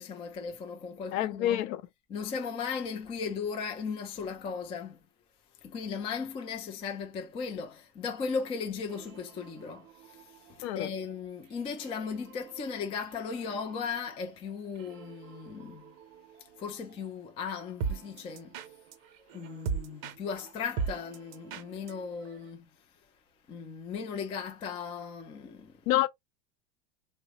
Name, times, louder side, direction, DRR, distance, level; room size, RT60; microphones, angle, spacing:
voice 1, 0.0-1.6 2.1-5.0 5.6-15.9 16.6-18.6 19.3-22.7 23.5-25.7, left 5 dB, 15° left, 0.3 m, -37 dB
voice 2, 1.1-1.8 10.6-10.9 25.9-26.1, left 14 dB, 55° left, 0.7 m, -27 dB
sound 1, 8.8-22.5, right 6 dB, 55° right, 0.7 m, -42 dB
3.0 x 2.2 x 2.8 m
hypercardioid pair, 85°, 50 cm